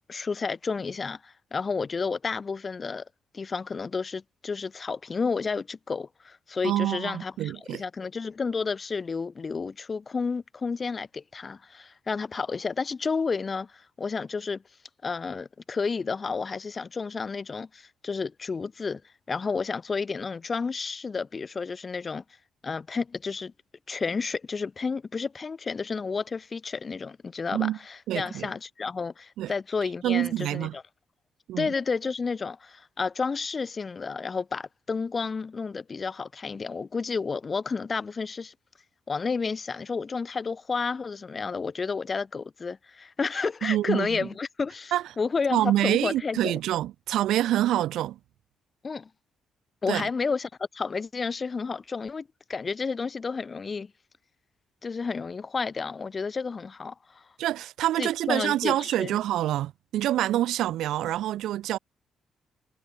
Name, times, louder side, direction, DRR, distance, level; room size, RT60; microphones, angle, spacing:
voice 1, 0.1-3.0 3.3-14.6 15.0-19.0 19.3-22.2 22.6-23.5 23.9-30.8 31.6-38.5 39.1-46.6 48.8-49.1 49.8-53.9 54.8-57.2 58.0-59.2, left 4 dB, 35° left, 1.9 m, -31 dB
voice 2, 6.6-7.8 27.5-27.8 28.1-28.5 29.4-29.5 30.0-30.7 31.5-31.7 43.6-44.3 44.9-45.0 45.5-48.2 49.9-50.1 57.4-61.8, right 13 dB, 80° right, 2.4 m, -26 dB
cardioid pair, 90°, 0 cm